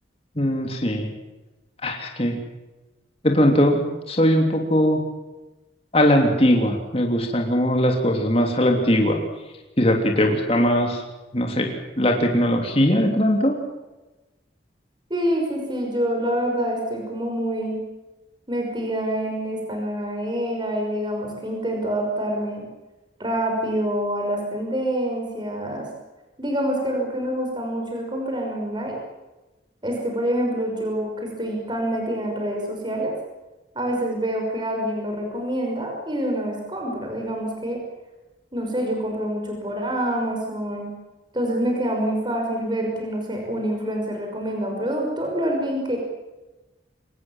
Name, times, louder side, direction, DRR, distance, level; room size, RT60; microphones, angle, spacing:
voice 1, 0.4-1.1 1.8-2.4 3.2-5.0 5.9-9.2 9.8-11.0 11.3-11.7 12.0-13.6, equal, 30° left, 2 dB, 3.1 m, -20 dB
voice 2, 15.1-17.8 18.5-22.6 23.2-25.9 26.4-29.0 29.8-33.1 33.7-37.8 38.5-40.9 41.3-46.0, right 1 dB, 25° right, 1 dB, 5.9 m, -26 dB
24.0 x 20.0 x 7.4 m, 1.1 s
head